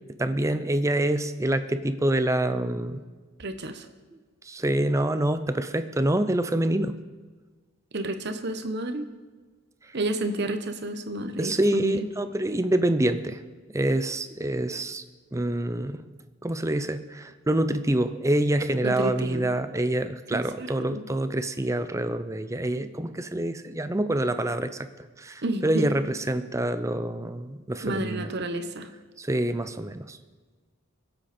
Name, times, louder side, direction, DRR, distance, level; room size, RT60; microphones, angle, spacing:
voice 1, 0.2-3.0 4.4-7.0 11.4-13.4 13.7-15.0 15.3-16.0 16.4-24.9 25.2-28.3 29.2-30.2, right 1 dB, 15° right, 11 dB, 0.5 m, -26 dB
voice 2, 3.4-3.9 7.9-9.1 9.9-12.1 18.8-19.5 20.3-21.0 25.4-25.9 27.8-28.9, right 1 dB, 50° right, 8 dB, 1.1 m, -31 dB
22.5 x 8.1 x 4.3 m, 1.4 s
head